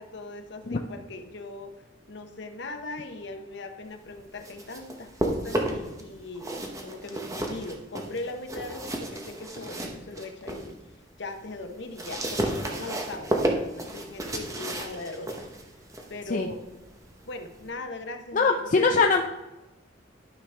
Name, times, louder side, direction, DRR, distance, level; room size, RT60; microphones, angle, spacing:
voice 1, 0.0-1.7 2.1-6.5 6.8-10.8 11.2-15.5 16.1-16.6 17.3-19.1, left 2 dB, 60° left, 6 dB, 0.9 m, -39 dB
sound 1, 4.2-6.0 6.3-10.7 11.1-17.7, right 1 dB, 15° right, 0.9 m, -33 dB
voice 2, 18.3-19.2, left 4 dB, 40° left, 3 dB, 0.5 m, -22 dB
12.0 x 5.8 x 3.4 m, 1.0 s
head